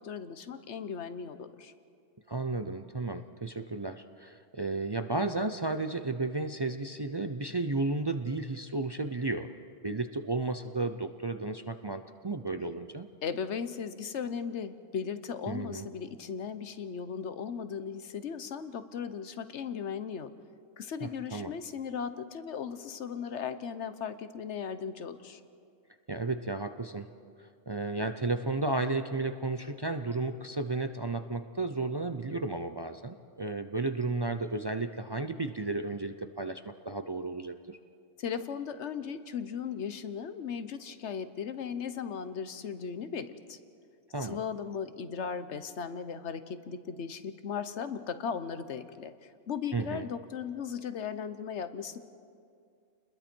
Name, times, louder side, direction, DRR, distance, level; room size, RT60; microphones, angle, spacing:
voice 1, 0.0-1.7 13.2-20.3 20.8-25.4 38.2-43.6 44.2-52.0, left 7 dB, 65° left, 11 dB, 1.2 m, -37 dB
voice 2, 2.3-9.5 9.8-13.1 15.5-15.9 21.0-21.5 26.1-27.1 27.4-37.8 44.1-44.4 49.7-50.0, right 3 dB, 35° right, 8 dB, 0.4 m, -33 dB
30.0 x 21.0 x 4.5 m, 2.3 s
omnidirectional pair, 1.3 m